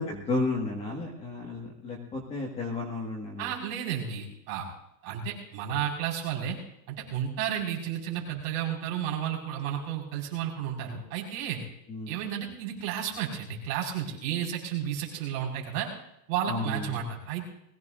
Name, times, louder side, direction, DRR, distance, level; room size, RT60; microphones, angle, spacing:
voice 1, 0.0-3.5 11.9-12.2 16.5-17.0, left 2 dB, 10° left, -1 dB, 1.6 m, -32 dB
voice 2, 3.4-4.7 5.0-6.6 6.9-11.6 12.1-15.9 16.3-17.4, right 9 dB, 35° right, -2 dB, 5.1 m, -32 dB
21.5 x 16.5 x 2.6 m, 0.77 s
supercardioid pair, 160°, 50 cm